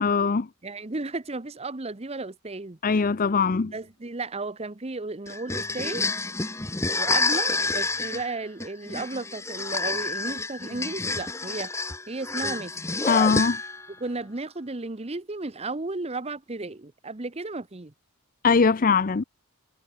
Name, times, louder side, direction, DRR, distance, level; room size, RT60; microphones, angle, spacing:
voice 1, 0.0-0.5 2.8-3.7 13.0-13.6 18.4-19.2, left 5 dB, 40° left, 0.5 m, -21 dB
voice 2, 0.6-2.8 3.6-6.1 7.0-11.7 12.1-12.7 14.0-17.9, right 3 dB, 25° right, 0.9 m, -34 dB
sound 1, 5.3-13.9, left 3 dB, 10° left, 0.8 m, -29 dB
head